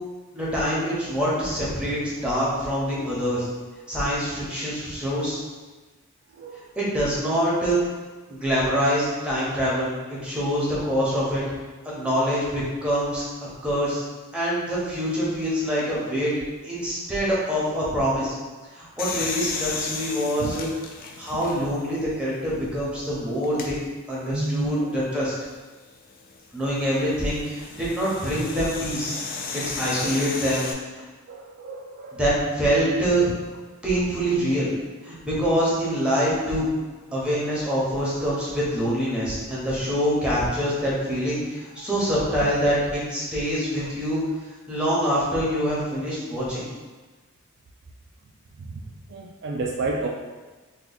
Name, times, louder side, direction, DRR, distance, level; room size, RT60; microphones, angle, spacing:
voice 1, 0.3-3.5 3.9-5.4 6.8-7.8 8.3-11.4 11.8-13.2 13.6-14.0 14.3-16.3 16.6-18.3 18.7-20.7 21.2-23.8 24.1-25.3 26.5-29.2 29.5-30.6 32.1-33.2 33.8-34.7 35.0-36.7 37.1-44.2 44.7-46.7, equal, 5° right, -7 dB, 0.9 m, -25 dB
sound 1, 19.0-21.9 22.5-22.6 23.4-23.7 25.8-30.7, left 4 dB, 40° left, 0.3 m, -34 dB
voice 2, 24.3-24.7 31.3-32.2 43.8-43.9 48.6-48.8 49.1-50.1, right 3 dB, 55° right, 0 dB, 0.3 m, -30 dB
2.9 x 2.3 x 3.9 m, 1.3 s
head